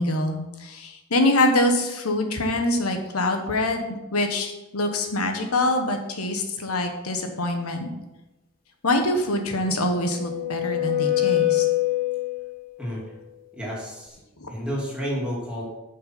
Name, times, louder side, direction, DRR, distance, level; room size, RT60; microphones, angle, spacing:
voice 1, 0.0-3.8 4.1-7.9 8.8-11.6 14.4-14.5, left 1 dB, 90° left, 5 dB, 1.4 m, -24 dB
sound 1, 9.6-12.6, left 15 dB, 40° left, 1.3 m, -25 dB
voice 2, 12.8-13.1 13.5-14.2 14.5-15.6, equal, 5° right, -5 dB, 2.7 m, -31 dB
9.1 x 5.7 x 6.0 m, 1.0 s
head